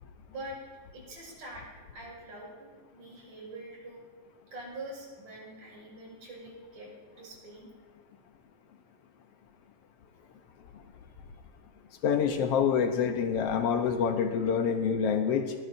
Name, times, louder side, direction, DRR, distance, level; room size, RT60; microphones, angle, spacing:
voice 1, 0.3-0.6 0.9-1.7 1.9-4.0 4.5-6.9 7.2-7.7, right 1 dB, 65° right, -3 dB, 7.1 m, -44 dB
voice 2, 12.0-15.5, left 7 dB, 90° left, 5 dB, 1.3 m, -26 dB
25.0 x 20.0 x 2.7 m, 1.4 s
omnidirectional pair, 4.0 m